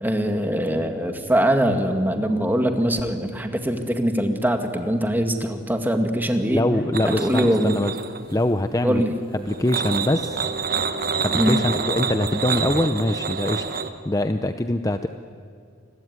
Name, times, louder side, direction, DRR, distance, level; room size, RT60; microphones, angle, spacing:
voice 1, 0.0-6.6 7.2-7.8 8.8-9.1 11.3-11.6, equal, 10° right, 5 dB, 2.0 m, -22 dB
voice 2, 6.5-7.9 8.3-9.0 9.3-10.5 11.2-13.6 14.0-15.1, left 1 dB, 15° left, 8 dB, 0.7 m, -23 dB
sound 1, 6.9-8.4 9.5-13.9, right 5 dB, 45° right, 1.3 m, -27 dB
28.5 x 21.0 x 9.5 m, 2.3 s
head